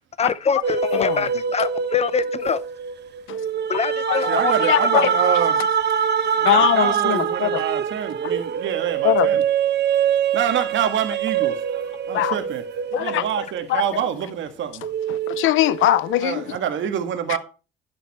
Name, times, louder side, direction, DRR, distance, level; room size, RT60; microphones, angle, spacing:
voice 1, 0.2-2.6 3.7-5.1, left 5 dB, 30° left, 0.9 m, -24 dB
sound 1, 0.6-14.4 14.8-16.4, right 7 dB, 60° right, 1.2 m, -24 dB
voice 2, 0.9-1.2 3.3-3.5 4.1-5.1 6.4-7.6 9.0-9.3 12.1-12.4 12.9-14.0 15.1-16.6 17.3-17.4, left 14 dB, 85° left, 0.8 m, -22 dB
voice 3, 4.3-5.6 6.4-9.4 9.8-12.6 12.9-14.8 16.2-17.4, right 9 dB, 75° right, 1.8 m, -26 dB
11.0 x 8.8 x 4.3 m
cardioid pair, 90°, 20 cm